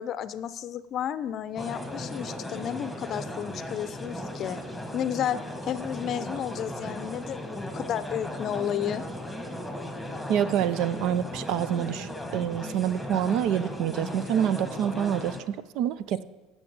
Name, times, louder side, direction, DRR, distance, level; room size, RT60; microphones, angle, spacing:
voice 1, 0.0-4.6 4.9-9.0, left 9 dB, 45° left, 14 dB, 0.6 m, -32 dB
sound 1, 1.6-15.4, left 1 dB, ahead, 1.5 m, -37 dB
voice 2, 10.3-16.2, right 9 dB, 60° right, 16 dB, 0.5 m, -27 dB
8.4 x 6.7 x 7.9 m, 1.2 s
supercardioid pair, 105°, 0 cm